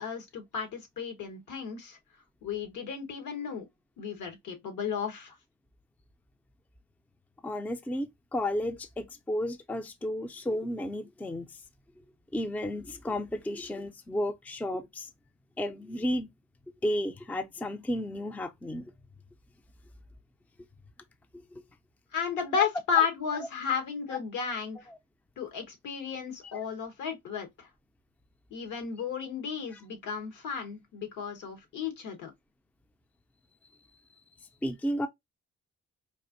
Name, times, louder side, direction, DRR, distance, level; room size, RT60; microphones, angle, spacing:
voice 1, 0.0-2.0 2.4-3.6 4.0-5.4 22.1-24.8 25.4-27.7 28.5-32.3, left 7 dB, 80° left, 1.3 m, -33 dB
voice 2, 7.4-11.5 12.3-15.1 15.6-16.3 16.8-18.9 21.5-21.6 22.6-22.7 24.1-24.2 24.9-25.0 29.7-29.8 34.6-35.1, left 1 dB, 5° left, 0.4 m, -33 dB
4.2 x 2.5 x 2.5 m
cardioid pair, 90°, 30 cm